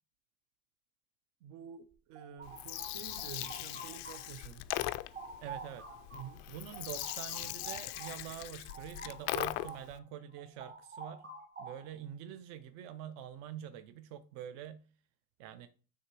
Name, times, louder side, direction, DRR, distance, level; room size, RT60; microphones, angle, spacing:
voice 1, 1.4-4.7 6.1-6.4, right 9 dB, 60° right, 0.9 m, -49 dB
sound 1, 1.9-4.5 4.8-10.0 10.3-12.0, right 3 dB, 30° right, 1.0 m, -49 dB
Gurgling, 2.4-9.9, left 18 dB, 50° left, 0.4 m, -40 dB
voice 2, 5.4-5.9 6.5-11.3 11.6-14.9 15.4-15.7, right 10 dB, 45° right, 0.5 m, -45 dB
9.6 x 3.3 x 4.6 m
cardioid pair, 175°, 37 cm